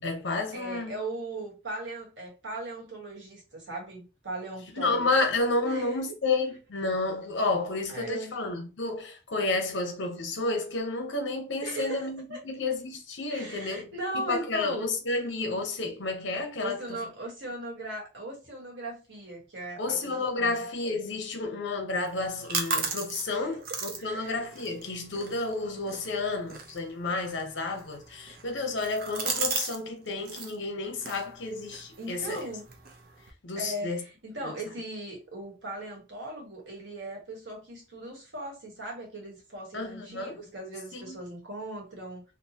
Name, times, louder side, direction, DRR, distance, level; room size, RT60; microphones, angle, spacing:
voice 1, 0.0-1.0 4.7-17.0 19.8-32.4 33.4-34.0 34.4-34.5 39.7-40.4 40.9-41.2, left 3 dB, 75° left, 0.7 m, -31 dB
voice 2, 0.5-5.3 5.6-6.2 7.9-8.3 11.6-12.4 13.3-14.9 16.6-20.6 23.3-24.4 32.0-32.7 33.6-42.2, right 1 dB, 75° right, 1.2 m, -38 dB
Audio papas, 22.1-29.8 30.1-30.5 31.0-33.3, right 4 dB, 50° right, 0.5 m, -36 dB
2.6 x 2.1 x 2.7 m
head